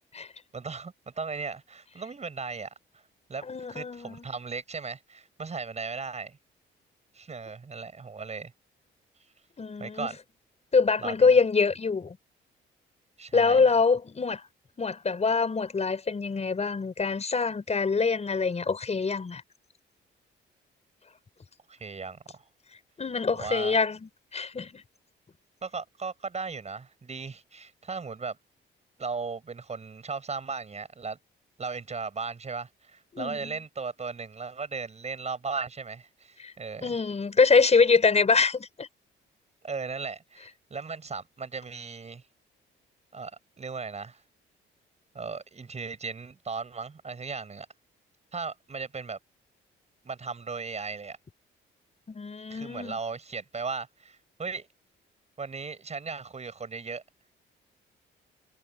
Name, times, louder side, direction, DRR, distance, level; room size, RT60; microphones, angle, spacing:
voice 1, 0.5-3.0 3.3-6.4 7.1-8.5 9.8-10.2 11.0-11.4 13.2-13.7 21.7-22.5 23.3-23.8 25.6-28.4 29.0-31.2 31.6-37.0 39.6-42.2 43.1-43.3 43.6-44.2 45.1-47.7 48.3-49.2 50.0-51.2 52.5-54.7 55.4-57.0, right 4 dB, 35° right, 7.8 m, -37 dB
voice 2, 3.4-4.3 9.6-10.1 10.7-12.2 13.3-14.4 14.8-19.4 23.0-24.8 33.1-33.5 36.4-36.5 36.8-38.9 52.1-53.0, left 4 dB, 35° left, 5.9 m, -25 dB
cardioid pair, 90°, 20 cm